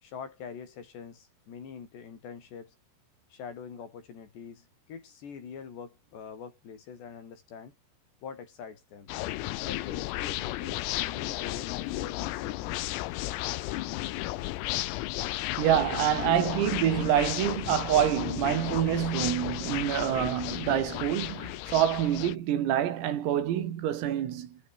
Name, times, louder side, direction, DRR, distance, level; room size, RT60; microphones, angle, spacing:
voice 1, 0.0-2.8 3.3-7.8 8.2-9.1 9.6-12.9, left 6 dB, 55° left, 6.8 m, -44 dB
sound 1, 9.1-22.4, left 17 dB, 90° left, 3.9 m, -34 dB
voice 2, 15.6-24.6, right 11 dB, 80° right, 5.3 m, -27 dB
omnidirectional pair, 6.0 m